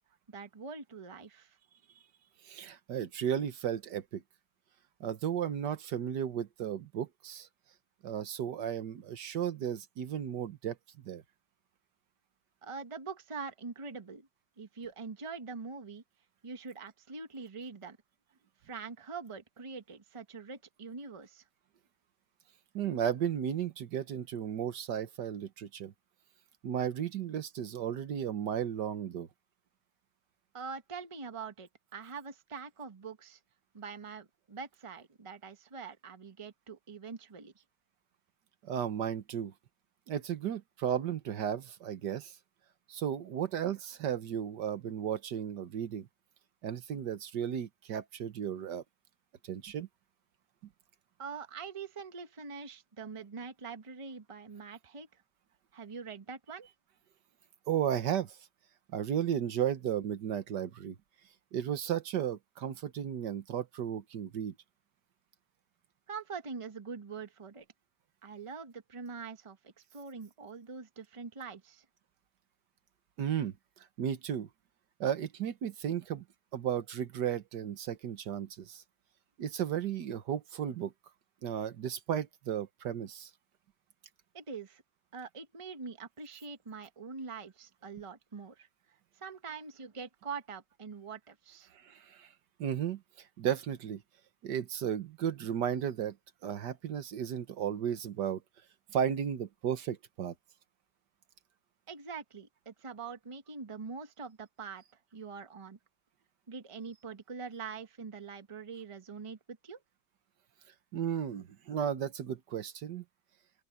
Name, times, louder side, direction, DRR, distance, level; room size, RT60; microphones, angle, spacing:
voice 1, 0.3-1.6 12.6-14.3 14.6-16.0 16.4-18.0 18.6-21.4 30.5-33.4 33.7-37.6 51.2-55.1 55.7-56.7 66.1-67.6 68.2-71.8 84.3-84.8 85.1-88.7 89.2-91.7 101.9-104.8 105.1-105.8 106.5-109.8, right 5 dB, 20° right, 1.1 m, -44 dB
voice 2, 2.4-4.2 5.0-7.5 8.0-11.2 22.7-25.9 26.6-29.3 38.6-39.5 40.1-42.3 42.9-46.1 46.6-48.8 49.4-49.9 57.7-58.4 58.9-61.0 61.5-64.5 73.2-73.6 74.0-74.5 75.0-76.2 76.5-78.8 79.4-80.9 81.4-83.3 91.7-92.3 92.6-93.0 93.4-94.0 94.4-96.2 96.4-98.4 98.9-100.3 110.9-113.0, right 9 dB, 85° right, 1.8 m, -34 dB
open air
omnidirectional pair, 1.8 m